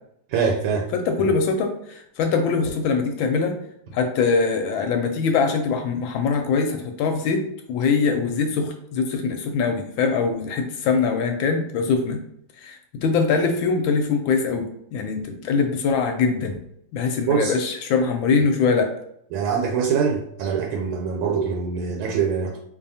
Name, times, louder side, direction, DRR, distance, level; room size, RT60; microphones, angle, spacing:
voice 1, 0.3-0.9 17.3-17.5 19.3-22.6, right 6 dB, 80° right, 1 dB, 1.4 m, -23 dB
voice 2, 0.9-3.6 3.9-7.4 7.7-12.2 12.6-16.6 16.9-18.9, left 5 dB, 75° left, 5 dB, 1.2 m, -22 dB
4.7 x 2.7 x 2.7 m, 0.72 s
omnidirectional pair, 2.3 m